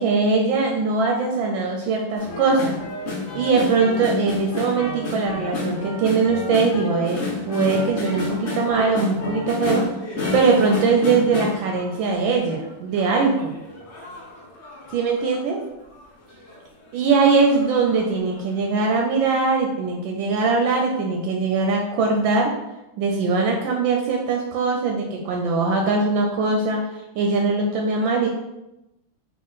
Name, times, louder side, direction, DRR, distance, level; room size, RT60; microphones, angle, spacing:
voice 1, 0.0-2.8 3.3-9.8 10.3-13.5 14.9-15.6 16.9-22.5 23.0-26.8 27.1-28.3, right 4 dB, 80° right, 1 dB, 1.3 m, -21 dB
sound 1, 2.2-12.5 12.9-15.4 15.9-16.0 16.3-16.6 17.1-18.1 18.4-18.5, left 3 dB, 40° left, 1.1 m, -30 dB
3.8 x 3.1 x 4.0 m, 0.94 s
omnidirectional pair, 2.2 m